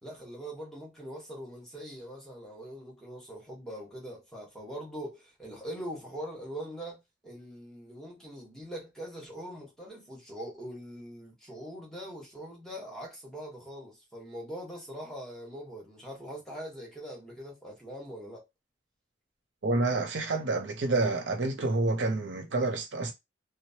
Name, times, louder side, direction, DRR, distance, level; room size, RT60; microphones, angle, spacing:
voice 1, 0.0-18.5, equal, 5° left, 1.2 m, -42 dB
voice 2, 19.6-23.1, right 2 dB, 80° right, 0.6 m, -28 dB
3.0 x 2.0 x 2.8 m
head